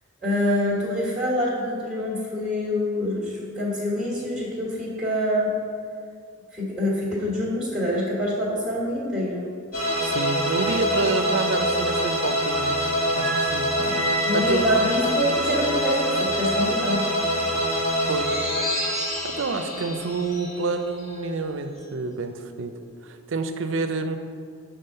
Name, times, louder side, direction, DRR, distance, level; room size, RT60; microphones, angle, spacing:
voice 1, 0.2-5.5 6.5-9.5 13.7-14.0 14.2-17.0, left 1 dB, ahead, -8 dB, 1.3 m, -26 dB
sound 1, 9.7-21.1, equal, 40° left, 1.8 m, -25 dB
voice 2, 10.0-14.0 14.3-14.7 18.1-18.4 19.2-22.7 23.0-24.2, right 3 dB, 60° right, 8 dB, 0.4 m, -28 dB
7.0 x 3.6 x 5.5 m, 2.3 s
head